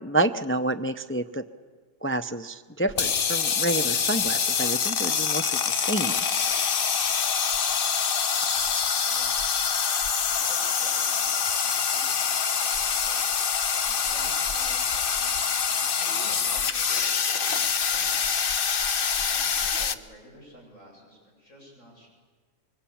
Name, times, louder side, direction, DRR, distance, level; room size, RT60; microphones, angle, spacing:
voice 1, 0.0-1.4 2.0-6.2, right 2 dB, 15° left, 8 dB, 0.5 m, -28 dB
sound 1, 2.9-19.9, left 6 dB, 50° left, 1.0 m, -25 dB
voice 2, 8.2-9.9 10.4-13.3 13.8-18.3 18.6-18.9 19.3-22.1, equal, 85° left, -1 dB, 8.3 m, -51 dB
26.0 x 24.0 x 8.7 m, 1.5 s
omnidirectional pair, 1.3 m